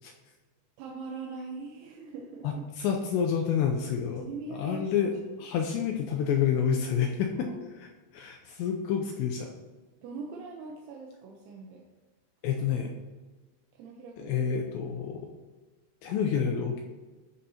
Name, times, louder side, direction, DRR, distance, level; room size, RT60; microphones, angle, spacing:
voice 1, 0.8-2.6 4.2-5.4 7.3-7.7 10.0-11.8 13.7-14.3, right 4 dB, 75° right, -2 dB, 3.1 m, -42 dB
voice 2, 2.4-4.2 4.5-5.1 5.4-7.5 7.8-7.9 8.1-9.5 12.4-12.9 14.2-15.3 16.0-16.8, left 7 dB, 85° left, 2 dB, 2.5 m, -28 dB
13.5 x 6.5 x 2.9 m, 1.3 s
omnidirectional pair, 5.8 m